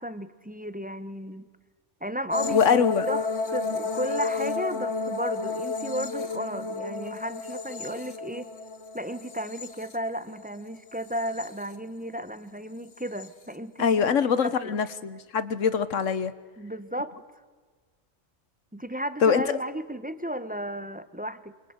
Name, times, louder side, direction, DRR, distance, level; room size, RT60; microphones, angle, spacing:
voice 1, 0.0-1.5 2.0-8.5 8.9-14.5 16.6-17.1 18.7-21.5, equal, 10° right, 13 dB, 0.8 m, -34 dB
sound 1, 2.3-10.5 10.9-11.7 13.0-13.3, left 4 dB, 60° left, 1.7 m, -32 dB
voice 2, 2.5-3.1 13.8-16.3 19.2-19.6, left 6 dB, 80° left, 15 dB, 1.4 m, -23 dB
27.5 x 25.5 x 8.1 m, 1.5 s
omnidirectional pair, 1.3 m